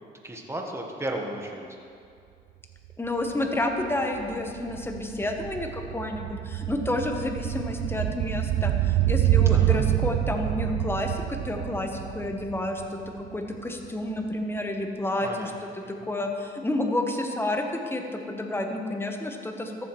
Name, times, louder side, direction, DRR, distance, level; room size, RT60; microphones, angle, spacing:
voice 1, 0.2-1.6 9.5-9.8 15.2-15.5, right 1 dB, 15° right, 1 dB, 1.3 m, -34 dB
sound 1, 2.8-2.9 3.2-13.6 13.8-13.9, right 13 dB, 75° right, 0.4 m, -27 dB
voice 2, 3.0-19.7, left 1 dB, 10° left, 3 dB, 1.0 m, -30 dB
14.0 x 7.1 x 3.1 m, 2.3 s
cardioid pair, 90°, 20 cm